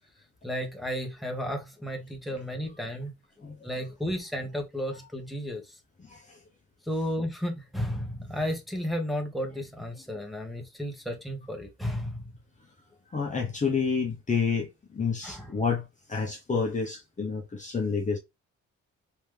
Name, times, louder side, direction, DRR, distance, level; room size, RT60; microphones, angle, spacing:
voice 1, 0.4-3.1 3.6-5.6 6.9-12.3 15.2-15.5, equal, ahead, 1.2 m, -33 dB
voice 2, 6.0-6.4 13.1-15.8 16.1-18.2, left 5 dB, 25° left, 0.9 m, -29 dB
3.4 x 3.0 x 3.4 m
cardioid pair, 90°, 30 cm